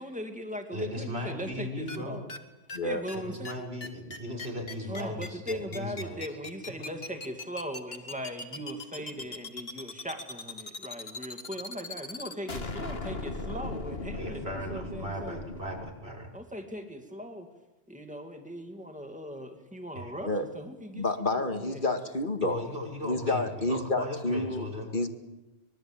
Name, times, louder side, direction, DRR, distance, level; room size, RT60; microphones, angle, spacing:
voice 1, 0.0-2.3 2.8-3.5 4.9-15.4 16.3-17.5 17.9-21.2 21.6-21.9, equal, 5° right, 5 dB, 2.6 m, -39 dB
voice 2, 0.7-2.2 3.1-6.2 14.1-16.3 19.9-20.1 22.4-25.0, left 1 dB, 70° right, 2 dB, 6.1 m, -37 dB
sound 1, 1.9-2.0 2.3-2.4 2.7-2.8 3.1-3.2 3.4-3.5 3.8-15.9, left 3 dB, 65° left, 2.3 m, -38 dB
voice 3, 20.9-22.6 23.0-24.7 24.9-25.1, left 2 dB, 50° left, 6 dB, 2.1 m, -29 dB
24.5 x 22.5 x 9.0 m, 1.0 s
omnidirectional pair, 1.1 m